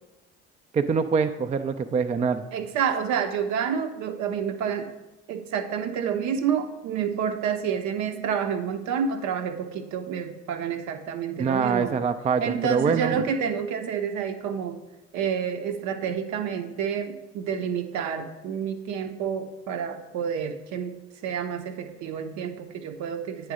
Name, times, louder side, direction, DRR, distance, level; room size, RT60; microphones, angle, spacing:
voice 1, 0.7-2.4 11.3-13.3, right 5 dB, 20° right, 8 dB, 0.4 m, -24 dB
voice 2, 2.5-4.9 5.3-11.9 12.4-14.8 15.1-21.0 21.2-23.5, right 7 dB, 60° right, 7 dB, 0.7 m, -29 dB
9.1 x 3.1 x 4.9 m, 1.1 s
hypercardioid pair, 55°, 32 cm